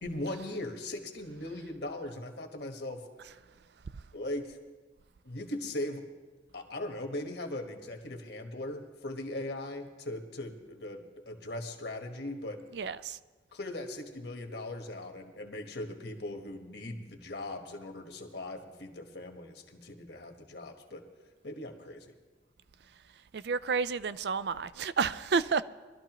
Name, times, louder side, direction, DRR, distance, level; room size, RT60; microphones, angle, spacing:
voice 1, 0.0-3.0 4.1-4.6 5.2-6.0 6.5-11.0 11.3-12.6 13.5-21.0 21.4-22.1, left 1 dB, 65° left, 4 dB, 1.4 m, -39 dB
voice 2, 12.7-13.2 23.3-25.6, right 5 dB, 65° right, 15 dB, 0.4 m, -30 dB
22.0 x 12.5 x 3.0 m, 1.3 s
head